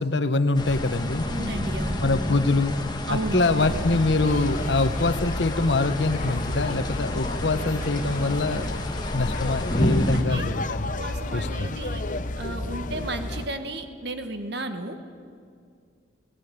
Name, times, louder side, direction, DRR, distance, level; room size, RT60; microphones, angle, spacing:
voice 1, 0.0-1.2 2.0-2.8 3.1-8.7 9.1-10.9 11.3-11.7, left 2 dB, 65° left, 11 dB, 1.0 m, -24 dB
sound 1, 0.5-10.2, left 1 dB, 25° left, 1.4 m, -30 dB
voice 2, 1.3-2.1 3.1-3.7 10.1-10.5 10.9-15.0, right 2 dB, 60° right, 7 dB, 1.5 m, -34 dB
sound 2, 3.6-13.5, left 2 dB, 45° left, 0.7 m, -32 dB
18.0 x 17.5 x 9.4 m, 2.3 s
head